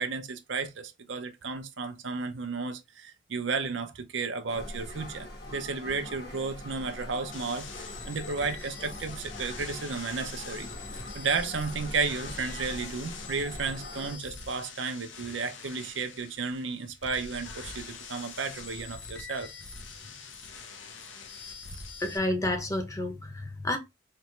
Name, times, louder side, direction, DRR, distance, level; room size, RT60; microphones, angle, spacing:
voice 1, 0.0-10.7 11.1-19.5, right 4 dB, 75° right, 0.7 m, -33 dB
sound 1, 4.5-14.2, left 1 dB, 55° left, 1.2 m, -42 dB
sound 2, 7.3-22.2, left 4 dB, 85° left, 1.0 m, -44 dB
voice 2, 22.0-23.8, left 1 dB, 15° left, 0.8 m, -30 dB
4.2 x 3.0 x 3.2 m
head